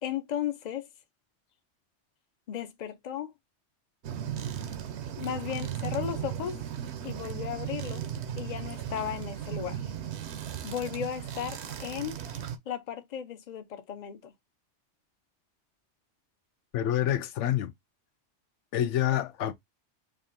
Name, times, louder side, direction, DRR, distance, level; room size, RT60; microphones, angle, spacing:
voice 1, 0.0-0.9 2.5-3.3 5.2-6.6 7.0-8.0 8.4-9.9 10.6-12.2 12.7-14.3, left 9 dB, 45° left, 0.7 m, -35 dB
sound 1, 4.0-12.6, right 9 dB, 70° right, 0.9 m, -36 dB
voice 2, 16.7-17.7 18.7-19.5, left 11 dB, 90° left, 0.9 m, -27 dB
5.0 x 2.5 x 2.6 m
omnidirectional pair, 1.2 m